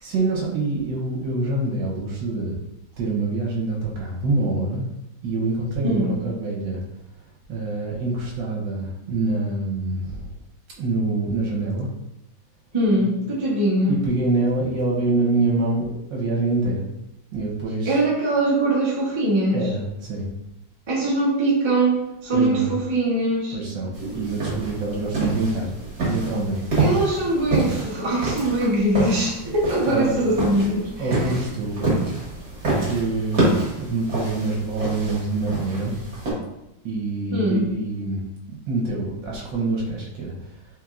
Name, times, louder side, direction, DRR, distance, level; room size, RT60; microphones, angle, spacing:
voice 1, 0.0-2.6 3.0-4.9 5.2-6.8 7.5-10.2 10.8-11.9 13.0-13.1 13.9-16.8 17.3-18.0 19.5-20.3 22.3-22.7 23.5-25.7 26.0-26.6 29.8-30.2 31.0-32.0 32.8-33.4 33.8-36.0 36.8-38.2 38.5-40.3, right 2 dB, 75° right, -3 dB, 1.6 m, -25 dB
voice 2, 5.8-6.2 12.7-14.0 17.8-19.7 20.9-23.6 26.8-31.2 37.3-37.7, right 1 dB, 25° right, -4 dB, 0.7 m, -22 dB
sound 1, 23.9-36.3, right 2 dB, 55° right, 1.9 m, -27 dB
4.5 x 3.7 x 2.5 m, 0.89 s
omnidirectional pair, 2.1 m